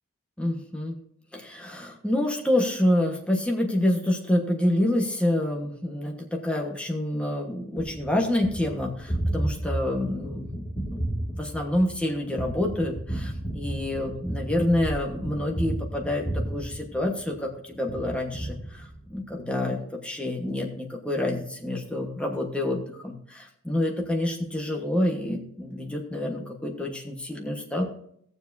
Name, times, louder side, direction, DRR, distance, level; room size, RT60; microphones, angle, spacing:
voice 1, 0.4-0.9 1.3-11.0 11.3-27.8, left 1 dB, 5° left, 0 dB, 1.2 m, -27 dB
Gunshot gunfire, 7.8-17.5 17.9-19.3, right 1 dB, 30° left, 1.9 m, -33 dB
17.5 x 7.1 x 2.7 m, 0.68 s
head